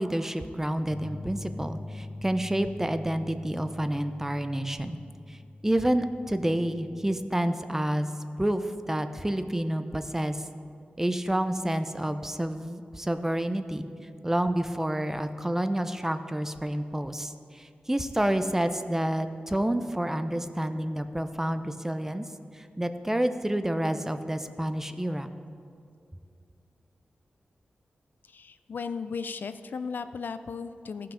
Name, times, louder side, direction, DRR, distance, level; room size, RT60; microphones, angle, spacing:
voice 1, 0.0-5.0 5.3-5.4 5.6-8.1 8.4-10.4 11.0-13.9 14.2-22.3 22.5-25.3, right 1 dB, 10° right, 9 dB, 0.6 m, -29 dB
sound 1, 0.9-7.1, left 2 dB, 50° left, 0.9 m, -43 dB
voice 2, 28.3-31.1, left 5 dB, 70° left, 11 dB, 0.4 m, -36 dB
15.0 x 5.7 x 5.0 m, 2.4 s
cardioid pair, 70°, 3 cm